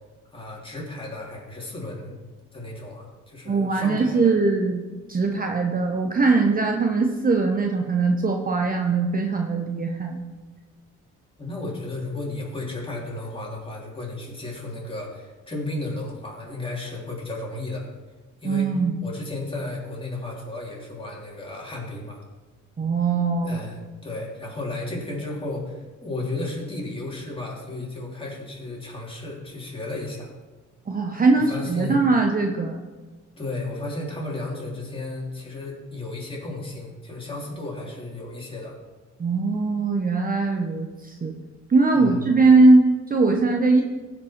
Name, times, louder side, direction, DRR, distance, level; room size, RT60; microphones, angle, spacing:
voice 1, 0.3-2.1 2.5-4.3 11.4-17.9 18.4-18.7 19.0-22.2 23.4-30.3 31.3-32.1 33.4-38.8 41.9-42.3, left 2 dB, 15° left, -3 dB, 3.2 m, -34 dB
voice 2, 3.5-4.8 5.1-10.2 18.4-18.9 22.8-23.6 30.9-32.8 39.2-41.3 41.7-43.8, right 3 dB, 30° right, 2 dB, 0.9 m, -21 dB
15.5 x 5.4 x 4.5 m, 1.3 s
cardioid pair, 90°, 30 cm